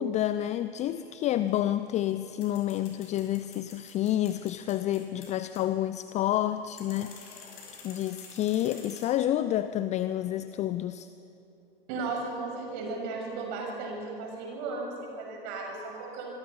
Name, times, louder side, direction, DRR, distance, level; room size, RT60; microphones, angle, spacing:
voice 1, 0.0-7.5 7.8-11.1, left 12 dB, 25° left, 13 dB, 0.5 m, -29 dB
sound 1, 0.9-9.1, left 5 dB, 65° left, 6.8 m, -51 dB
voice 2, 11.9-16.4, right 3 dB, 50° right, 0 dB, 7.3 m, -35 dB
27.0 x 22.0 x 5.7 m, 3.0 s
figure-of-eight pair, 95°, 30 cm